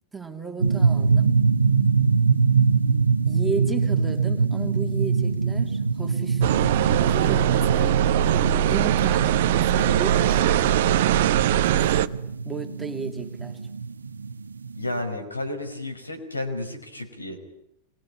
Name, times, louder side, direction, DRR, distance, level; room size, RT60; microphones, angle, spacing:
voice 1, 0.1-1.4 3.2-6.5 7.0-12.0 12.4-13.6, right 4 dB, 10° right, 4 dB, 3.0 m, -34 dB
sound 1, 0.6-15.0, right 5 dB, 75° right, 1.1 m, -24 dB
sound 2, 6.4-12.1, right 11 dB, 55° right, 1.0 m, -21 dB
voice 2, 14.8-17.4, left 2 dB, 80° left, 4 dB, 5.5 m, -32 dB
26.0 x 22.5 x 9.9 m, 0.80 s
figure-of-eight pair, 90°, 0 cm